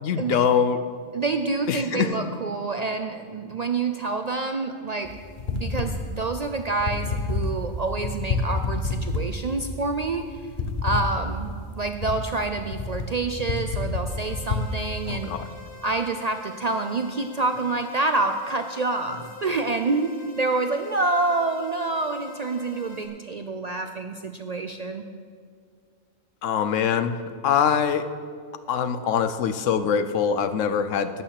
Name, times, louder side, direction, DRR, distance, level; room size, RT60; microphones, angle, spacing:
voice 1, 0.0-0.8 1.7-2.1 15.1-15.5 26.4-27.2 27.4-28.1 28.7-31.2, left 7 dB, 85° left, 11 dB, 1.0 m, -23 dB
voice 2, 1.1-5.1 5.5-10.3 10.8-15.3 15.8-25.0, right 3 dB, 55° right, 7 dB, 0.4 m, -27 dB
sound 1, 5.1-14.7, left 3 dB, 45° left, 1.0 m, -29 dB
sound 2, 14.1-23.1, left 5 dB, 25° right, 1.9 m, -45 dB
12.5 x 9.0 x 5.8 m, 2.1 s
omnidirectional pair, 1.3 m